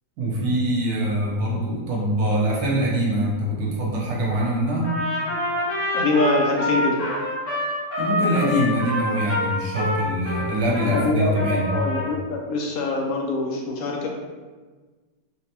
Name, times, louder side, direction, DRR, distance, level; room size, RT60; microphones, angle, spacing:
voice 1, 0.2-5.0 8.0-11.7, equal, 70° right, -3 dB, 1.2 m, -23 dB
Trumpet, 4.8-11.0 11.3-12.1, left 1 dB, 45° left, 1.6 m, -26 dB
voice 2, 5.9-7.0 10.9-14.1, left 3 dB, 70° left, 0 dB, 1.0 m, -24 dB
4.1 x 2.2 x 2.7 m, 1.3 s
omnidirectional pair, 1.7 m